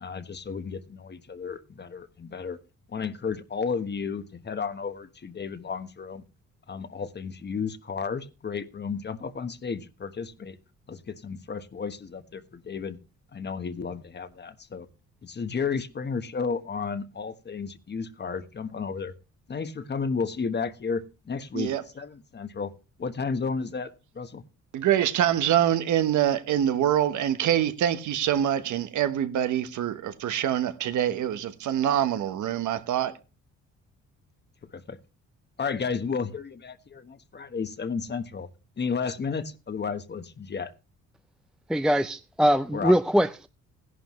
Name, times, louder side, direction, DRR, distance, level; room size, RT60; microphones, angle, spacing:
voice 1, 0.0-2.6 2.9-6.2 6.7-10.6 10.9-13.0 13.3-14.9 15.2-19.1 19.5-22.7 23.0-24.4 34.6-35.0 35.6-38.5 38.8-40.7 42.7-43.0, left 5 dB, 35° left, 1.3 m, -33 dB
voice 2, 24.7-33.2, right 10 dB, 75° right, 1.2 m, -25 dB
voice 3, 41.7-43.5, equal, ahead, 0.5 m, -22 dB
15.5 x 11.5 x 3.1 m
cardioid pair, 90°, 30 cm